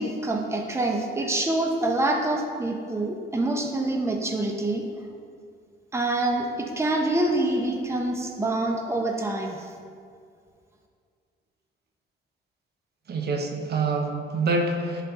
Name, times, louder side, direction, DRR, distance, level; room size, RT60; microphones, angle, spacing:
voice 1, 0.0-4.9 5.9-9.6, right 2 dB, 15° right, 2 dB, 0.9 m, -26 dB
voice 2, 13.1-15.0, right 3 dB, 55° right, 3 dB, 1.0 m, -26 dB
11.0 x 4.2 x 4.2 m, 2.2 s
cardioid pair, 90°, 20 cm